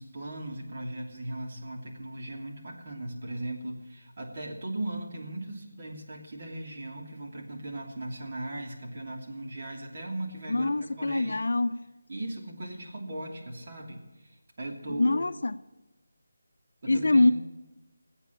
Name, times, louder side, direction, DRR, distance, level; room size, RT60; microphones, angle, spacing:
voice 1, 0.0-10.7 11.0-11.4 12.1-15.2 16.8-17.3, right 1 dB, 40° right, 2.9 m, -38 dB
voice 2, 10.5-11.8 14.9-15.6 16.9-17.3, left 2 dB, 70° left, 0.6 m, -24 dB
19.0 x 8.3 x 8.6 m
figure-of-eight pair, 170°, 0 cm